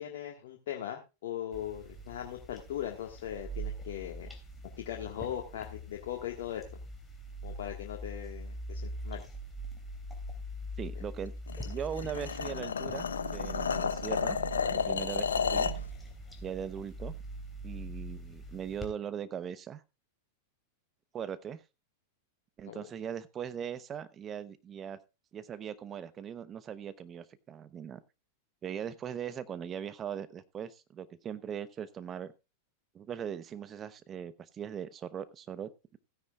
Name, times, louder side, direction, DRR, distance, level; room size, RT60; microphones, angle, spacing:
voice 1, 0.0-4.3 4.6-6.6 7.4-9.2 22.7-22.8, left 11 dB, 65° left, 1 dB, 1.7 m, -39 dB
sound 1, 1.5-18.9, right 2 dB, 10° left, 3.1 m, -43 dB
voice 2, 10.8-11.3 11.6-14.4 14.7-15.7 16.4-17.1 17.6-19.8 21.1-21.6 22.6-25.0 25.3-28.0 28.6-32.3 32.9-36.0, right 8 dB, 30° right, 14 dB, 0.9 m, -40 dB
sound 2, 11.5-15.8, left 6 dB, 85° left, 0.7 m, -32 dB
16.0 x 9.7 x 2.4 m, 0.27 s
hypercardioid pair, 100°, 0 cm